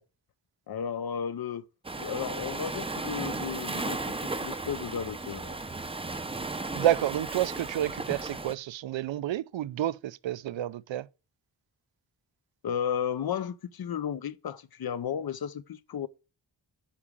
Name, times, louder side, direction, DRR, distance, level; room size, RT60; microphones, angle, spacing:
voice 1, 0.7-1.7 2.0-5.5 12.6-16.1, left 8 dB, 55° left, 0.7 m, -34 dB
Waves surf, 1.8-8.5, right 3 dB, 15° right, 0.5 m, -35 dB
voice 2, 6.7-11.1, right 12 dB, 85° right, 0.6 m, -29 dB
8.5 x 4.9 x 7.3 m
wide cardioid pair, 145°, 44 cm